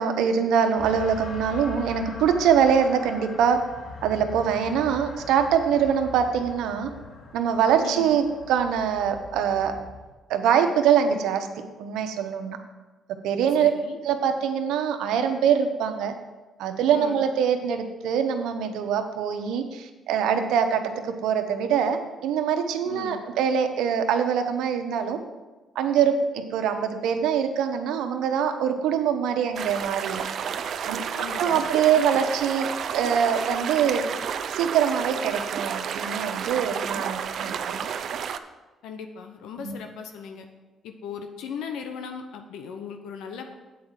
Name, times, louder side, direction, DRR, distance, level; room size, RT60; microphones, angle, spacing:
voice 1, 0.0-3.6 4.0-6.9 7.3-9.7 10.3-11.5 11.8-12.6 13.2-13.7 14.0-16.1 16.6-25.2 25.7-30.2 30.9-31.0 31.4-32.7 32.9-34.0 34.5-37.8 39.6-39.7, right 7 dB, 90° right, 6 dB, 0.8 m, -23 dB
sound 1, 0.8-10.1, left 3 dB, 65° left, 1.5 m, -41 dB
voice 2, 7.8-8.2 13.6-14.0 16.9-17.2 22.9-23.2 31.1-31.7 38.8-40.5 40.8-43.5, left 6 dB, 90° left, 6 dB, 0.8 m, -38 dB
sound 2, 29.6-38.4, right 7 dB, 65° right, 0.5 m, -31 dB
8.5 x 4.8 x 7.4 m, 1.2 s
cardioid pair, 90°, 0 cm